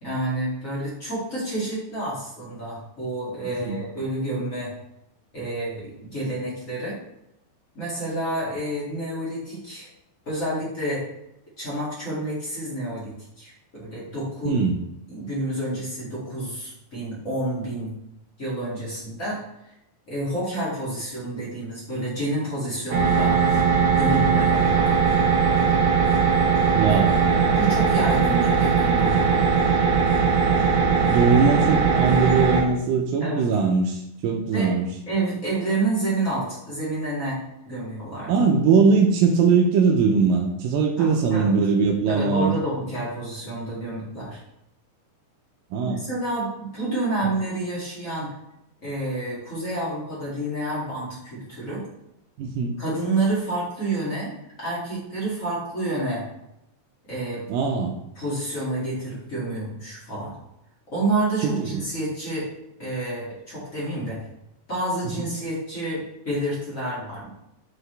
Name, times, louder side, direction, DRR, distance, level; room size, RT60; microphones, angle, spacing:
voice 1, 0.0-4.7 5.3-7.0 7.7-9.9 10.3-11.0 11.6-14.6 15.1-17.9 18.4-19.4 20.1-23.6 23.9-25.0 26.8-27.0 27.5-29.3 33.2-33.5 34.5-34.7 35.1-37.4 37.6-38.3 41.0-41.6 42.1-44.4 45.8-48.3 48.8-51.8 52.8-56.2 57.1-57.4 58.2-60.4 60.9-62.5 62.8-64.2 64.7-67.3, right 2 dB, 30° left, -7 dB, 1.8 m, -29 dB
voice 2, 3.4-3.8 14.5-14.8 24.1-24.4 26.7-27.1 30.8-34.0 34.2-35.0 38.3-42.6 45.7-46.1 52.4-52.8 57.5-58.0 61.4-61.8 65.0-65.3, right 5 dB, 80° right, 1 dB, 2.1 m, -21 dB
sound 1, 22.9-32.6, right 5 dB, 60° right, 2.3 m, -20 dB
7.0 x 4.8 x 3.3 m, 0.83 s
omnidirectional pair, 4.6 m